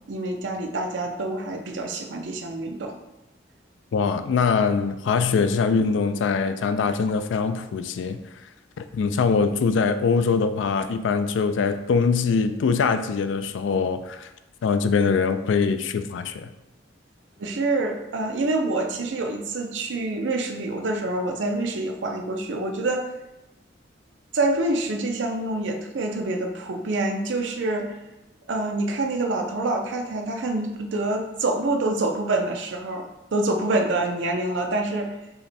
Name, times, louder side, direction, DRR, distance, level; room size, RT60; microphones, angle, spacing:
voice 1, 0.1-3.0 17.4-23.1 24.3-28.0 28.5-35.2, right 2 dB, 70° right, 3 dB, 0.5 m, -26 dB
voice 2, 3.9-8.2 8.8-14.3 14.6-16.5, left 5 dB, 75° left, 10 dB, 0.3 m, -23 dB
5.6 x 2.2 x 4.1 m, 0.95 s
head